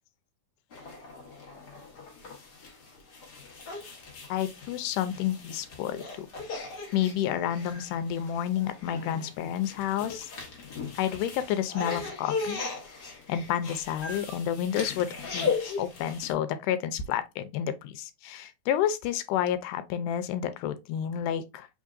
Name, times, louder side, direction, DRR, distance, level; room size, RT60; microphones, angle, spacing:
sound 1, 0.7-16.3, left 5 dB, 65° left, 1.0 m, -38 dB
voice 1, 4.3-6.3 6.5-6.6 6.9-10.3 11.0-12.6 13.3-21.7, left 10 dB, 90° left, 2.1 m, -30 dB
4.4 x 3.6 x 2.4 m
omnidirectional pair, 3.6 m